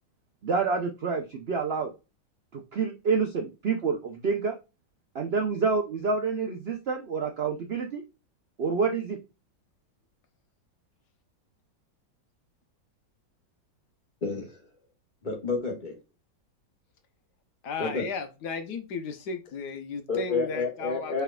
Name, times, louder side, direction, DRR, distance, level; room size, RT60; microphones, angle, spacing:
voice 1, 0.4-1.9 2.5-4.6 5.1-8.0 8.6-9.2, right 5 dB, 80° right, 3 dB, 0.5 m, -28 dB
voice 2, 14.2-14.7 15.2-16.0 17.8-18.1 20.1-21.2, left 3 dB, 30° left, 1 dB, 1.3 m, -30 dB
voice 3, 17.6-21.2, left 5 dB, 70° left, 8 dB, 1.3 m, -35 dB
4.6 x 4.4 x 2.3 m, 0.27 s
omnidirectional pair, 2.0 m